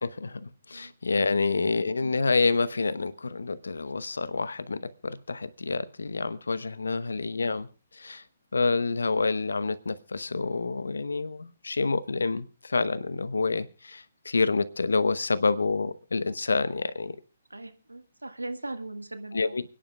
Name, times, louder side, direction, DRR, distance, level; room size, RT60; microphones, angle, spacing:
voice 1, 0.0-7.7 7.9-8.2 8.5-17.2 19.3-19.6, left 4 dB, 75° left, 15 dB, 0.9 m, -28 dB
voice 2, 17.5-19.6, right 2 dB, 85° right, 9 dB, 1.4 m, -40 dB
29.5 x 10.0 x 2.3 m, 0.31 s
figure-of-eight pair, 135°, 0 cm